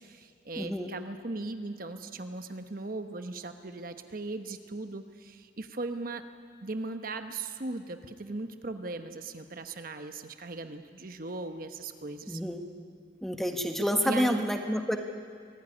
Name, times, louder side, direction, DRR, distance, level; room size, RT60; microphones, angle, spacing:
voice 1, 0.0-6.2 6.6-12.4 14.0-14.5, right 2 dB, 50° right, 8 dB, 1.0 m, -38 dB
voice 2, 0.6-1.0 12.3-12.7 13.2-15.0, equal, ahead, 5 dB, 1.4 m, -29 dB
24.5 x 17.5 x 9.9 m, 2.1 s
head